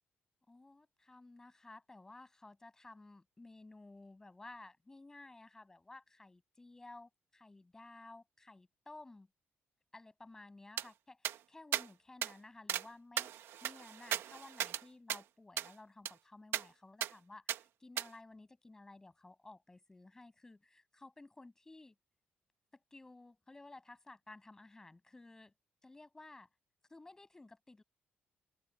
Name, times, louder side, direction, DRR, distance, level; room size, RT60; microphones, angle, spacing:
voice 1, 0.5-9.3 9.9-22.0 22.7-25.5 25.8-26.5 26.9-27.8, left 2 dB, 15° left, 6.5 m, -55 dB
sound 1, 10.8-10.9 11.2-11.4 11.7-11.9 12.2-12.3 12.7-12.9 13.2-14.8 15.1-15.2 15.6-15.7 16.1-16.2 16.5-16.6 17.0-17.1 17.5-17.6 18.0-18.1, right 11 dB, 90° right, 1.3 m, -37 dB
open air
cardioid pair, 170°, 4 cm